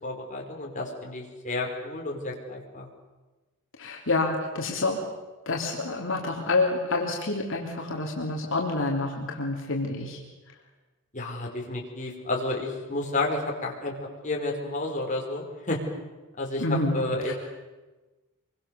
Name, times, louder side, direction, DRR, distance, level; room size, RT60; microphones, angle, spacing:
voice 1, 0.0-2.9 11.1-15.8 16.4-16.6 16.9-17.3, left 2 dB, 35° left, -1 dB, 4.7 m, -31 dB
voice 2, 3.8-5.0 5.4-10.2 16.6-17.0 17.3-17.4, left 2 dB, 60° left, -1 dB, 3.4 m, -28 dB
26.5 x 23.5 x 7.1 m, 1.2 s
head